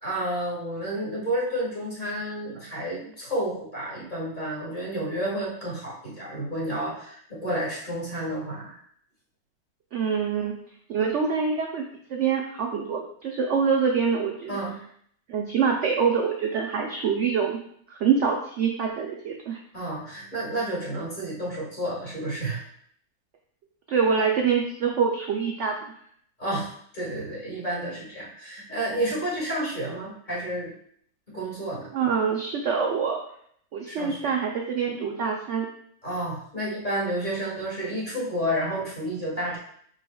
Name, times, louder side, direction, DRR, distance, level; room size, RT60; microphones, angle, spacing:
voice 1, 0.0-8.8 14.5-14.8 19.7-22.6 26.4-30.7 31.3-31.9 33.9-34.3 36.0-39.6, right 1 dB, 30° left, -6 dB, 1.7 m, -30 dB
voice 2, 9.9-10.5 10.9-11.8 12.1-14.6 15.3-17.6 17.9-19.6 23.9-25.7 31.9-33.2 33.7-35.7, right 6 dB, 65° right, 1 dB, 0.7 m, -25 dB
4.8 x 4.8 x 2.3 m, 0.64 s
omnidirectional pair, 1.7 m